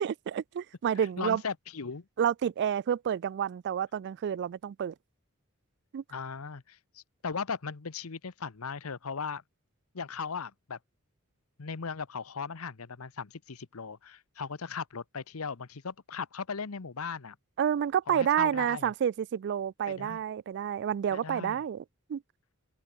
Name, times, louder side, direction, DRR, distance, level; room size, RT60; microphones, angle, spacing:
voice 1, 0.0-1.4 2.2-4.9 5.9-6.0 17.6-21.8 22.1-22.2, right 8 dB, 55° right, 0.3 m, -29 dB
voice 2, 1.0-2.0 6.1-9.4 9.9-10.8 11.6-17.4 18.1-18.9 19.9-20.2 21.1-21.6, left 5 dB, 90° left, 0.9 m, -38 dB
head